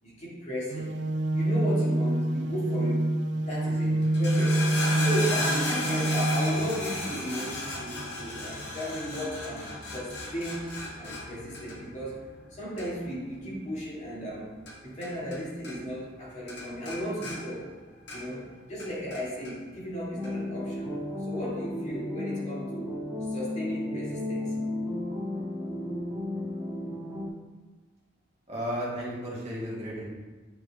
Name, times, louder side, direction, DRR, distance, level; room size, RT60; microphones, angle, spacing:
voice 1, 0.0-0.9 1.3-3.1 3.5-4.6 5.0-14.5 14.8-17.7 18.1-18.4 18.7-23.0 23.3-24.5, equal, 35° left, -7 dB, 2.4 m, -35 dB
sound 1, 0.7-6.7, right 1 dB, 65° right, 0.5 m, -26 dB
sound 2, 4.0-15.4 15.6-16.2 16.5-18.4 18.8-19.5 20.2-20.3, left 1 dB, 60° left, 1.7 m, -35 dB
sound 3, 20.1-27.3, left 1 dB, 10° right, 1.8 m, -34 dB
voice 2, 28.5-30.1, equal, 35° right, -6 dB, 1.9 m, -33 dB
9.0 x 4.8 x 3.7 m, 1.3 s
head